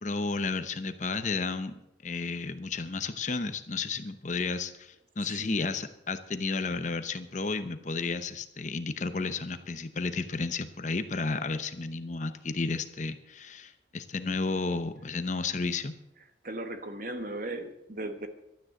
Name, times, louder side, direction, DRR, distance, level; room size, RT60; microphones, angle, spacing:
voice 1, 0.0-1.7 2.0-15.9, left 3 dB, 40° left, 10 dB, 0.8 m, -32 dB
voice 2, 5.2-5.6 16.4-18.3, right 1 dB, 45° right, 7 dB, 1.3 m, -37 dB
12.5 x 9.2 x 7.7 m, 0.86 s
head